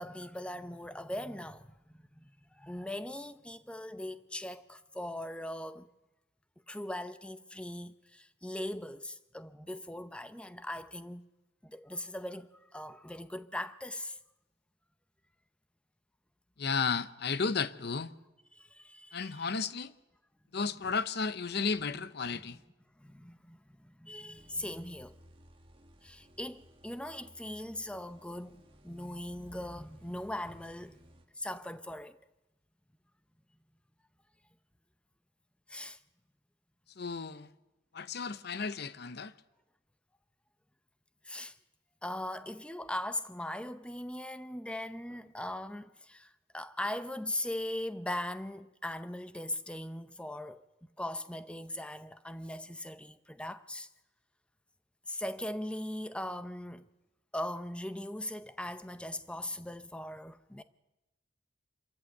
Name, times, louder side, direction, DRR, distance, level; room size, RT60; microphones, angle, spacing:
voice 1, 0.0-5.9 6.7-11.3 11.6-14.2 18.5-19.4 21.9-22.1 22.3-22.6 23.0-25.2 26.0-31.0 31.4-32.2 35.7-36.0 41.2-41.6 42.0-50.6 51.0-53.9 55.1-56.8 57.3-60.6, left 1 dB, 5° left, 0.7 m, -40 dB
voice 2, 16.6-18.1 19.1-19.9 20.5-22.6 37.0-37.5 37.9-39.3, left 5 dB, 55° left, 0.8 m, -33 dB
sound 1, 24.3-31.3, equal, 30° right, 1.8 m, -59 dB
25.5 x 14.0 x 7.9 m
head